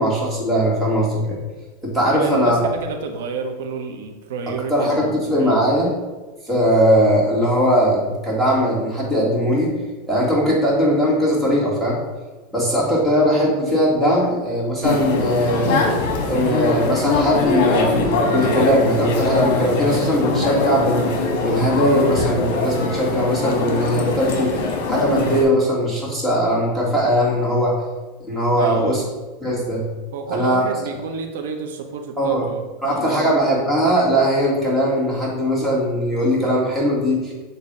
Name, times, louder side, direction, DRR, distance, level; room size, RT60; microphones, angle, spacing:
voice 1, 0.0-1.4 1.8-2.7 4.5-5.9 6.5-9.7 10.1-12.0 12.5-15.8 16.3-24.5 24.9-27.8 28.3-29.0 29.4-29.8 30.3-30.6 32.2-32.4 32.8-37.3, equal, 5° right, -5 dB, 1.8 m, -19 dB
voice 2, 2.1-5.6 28.5-29.0 30.1-33.3, right 5 dB, 85° right, 4 dB, 0.8 m, -30 dB
sound 1, 14.8-25.4, left 3 dB, 60° left, 1.3 m, -22 dB
7.4 x 2.7 x 5.2 m, 1.2 s
supercardioid pair, 155°, 0 cm